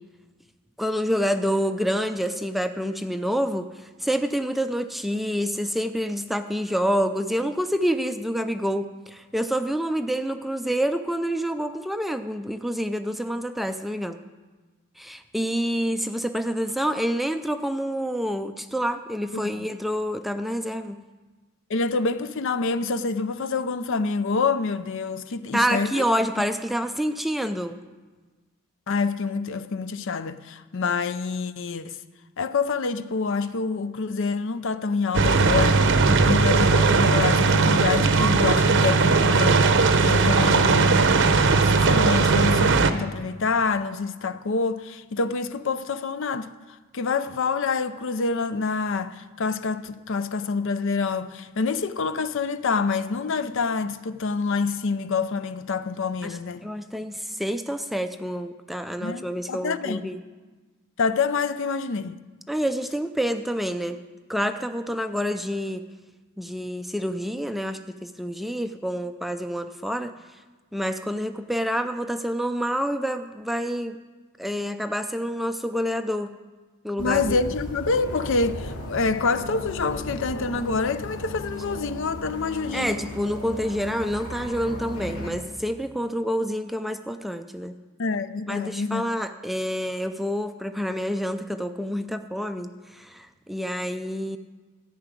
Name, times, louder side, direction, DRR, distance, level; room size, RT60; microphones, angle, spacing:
voice 1, 0.8-14.2 15.0-21.0 25.5-27.8 56.2-60.2 62.5-64.0 64.3-65.8 66.4-70.2 70.7-74.0 74.4-76.3 76.8-77.4 82.7-87.7 88.5-94.4, equal, ahead, 0.4 m, -27 dB
voice 2, 19.3-19.7 21.7-26.1 28.9-32.0 32.4-35.9 36.2-39.7 40.0-41.1 41.6-46.5 46.9-56.6 59.0-60.0 61.0-62.2 77.0-83.0 88.0-89.1, left 4 dB, 60° left, 0.5 m, -27 dB
sound 1, 35.1-42.9, right 4 dB, 55° right, 0.7 m, -18 dB
sound 2, 77.0-85.3, left 1 dB, 90° left, 2.1 m, -36 dB
13.5 x 6.0 x 9.1 m
head